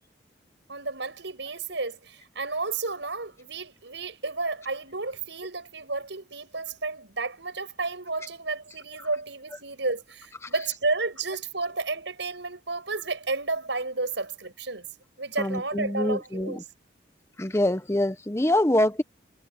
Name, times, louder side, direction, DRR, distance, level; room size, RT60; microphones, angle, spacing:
voice 1, 0.7-14.9 15.2-16.6, right 3 dB, 80° right, 5.9 m, -32 dB
voice 2, 15.4-16.6 17.4-19.0, left 1 dB, 15° left, 0.8 m, -24 dB
head